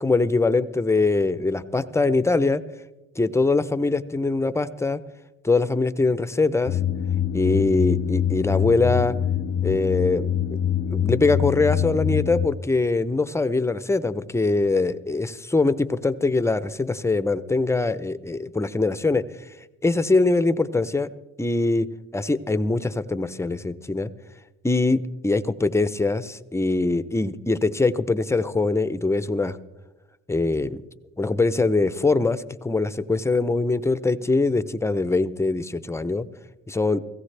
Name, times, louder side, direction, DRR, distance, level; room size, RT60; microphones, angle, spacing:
voice 1, 0.0-2.6 3.2-5.0 5.4-6.8 7.3-9.2 9.6-10.3 10.9-19.2 19.8-21.1 21.4-21.9 22.1-24.1 24.6-29.6 30.3-30.8 31.2-36.2 36.7-37.0, left 3 dB, 10° left, 14 dB, 0.6 m, -22 dB
sound 1, 6.7-12.5, left 9 dB, 45° left, 0.6 m, -24 dB
17.5 x 16.0 x 3.3 m, 1.0 s
cardioid pair, 90°, 30 cm